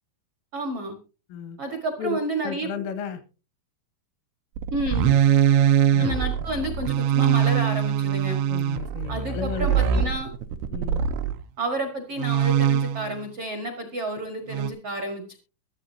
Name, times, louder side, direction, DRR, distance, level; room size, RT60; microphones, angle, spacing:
voice 1, 0.5-0.9 1.6-2.7 4.7-5.1 6.0-8.4 9.1-10.3 11.6-15.4, right 1 dB, 75° right, 4 dB, 1.3 m, -30 dB
voice 2, 1.3-1.6 2.0-3.2 5.9-6.1 8.5-10.1 10.7-11.1, left 6 dB, 85° left, 10 dB, 4.1 m, -33 dB
sound 1, 4.6-11.4 12.2-13.2 14.5-14.7, right 9 dB, 90° right, 3.5 m, -22 dB
22.5 x 8.2 x 2.8 m, 0.32 s
omnidirectional pair, 5.6 m